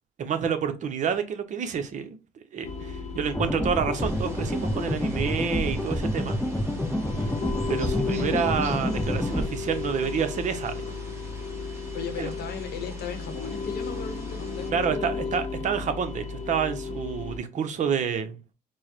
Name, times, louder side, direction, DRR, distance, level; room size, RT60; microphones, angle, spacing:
voice 1, 0.2-2.2 2.5-6.4 7.7-10.9 12.2-12.3 14.7-18.4, right 7 dB, 45° right, 0.7 m, -28 dB
sound 1, 2.6-17.4, left 4 dB, 40° left, 0.8 m, -34 dB
sound 2, 3.3-9.5, left 1 dB, 5° left, 0.4 m, -28 dB
sound 3, 3.9-14.7, right 1 dB, 15° right, 0.9 m, -47 dB
voice 2, 11.9-15.2, left 5 dB, 70° left, 0.9 m, -37 dB
4.5 x 2.1 x 2.8 m
cardioid pair, 110°, 17 cm